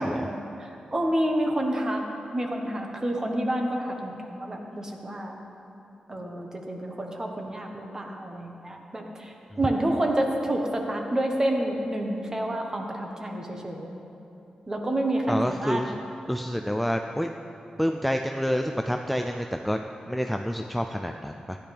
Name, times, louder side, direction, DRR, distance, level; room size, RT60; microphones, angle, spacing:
voice 1, 0.0-2.0 2.3-5.4 6.1-13.9 14.7-15.8, right 1 dB, 25° right, 2 dB, 1.2 m, -29 dB
voice 2, 15.3-16.0 16.3-17.3 17.8-19.8 20.1-21.6, equal, ahead, 4 dB, 0.3 m, -28 dB
14.5 x 10.0 x 3.4 m, 2.8 s
wide cardioid pair, 125°, 2 cm